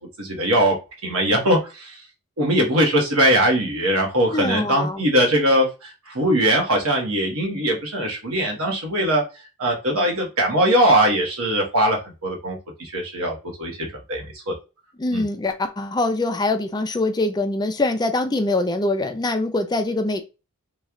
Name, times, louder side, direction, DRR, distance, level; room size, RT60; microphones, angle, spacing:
voice 1, 0.2-0.8 1.0-2.0 2.4-9.2 9.6-13.8 14.1-14.5 15.1-15.2, right 1 dB, 75° right, 1.2 m, -21 dB
voice 2, 4.3-5.1 15.0-20.2, left 2 dB, 20° left, 0.4 m, -23 dB
3.1 x 2.4 x 3.6 m
head